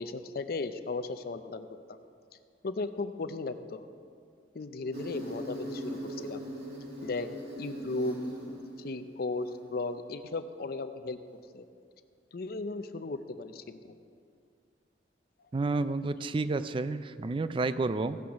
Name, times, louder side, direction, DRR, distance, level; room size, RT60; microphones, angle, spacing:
voice 1, 0.0-2.0 2.6-3.9 4.5-6.4 7.0-7.3 7.6-8.2 8.5-11.2 11.5-11.6 12.3-13.8, left 3 dB, 60° left, 10 dB, 0.5 m, -36 dB
Insect, 4.9-9.9, equal, 65° right, 2.3 m, -40 dB
voice 2, 15.5-18.2, right 3 dB, 30° right, 12 dB, 0.4 m, -30 dB
16.0 x 6.3 x 5.8 m, 2.3 s
head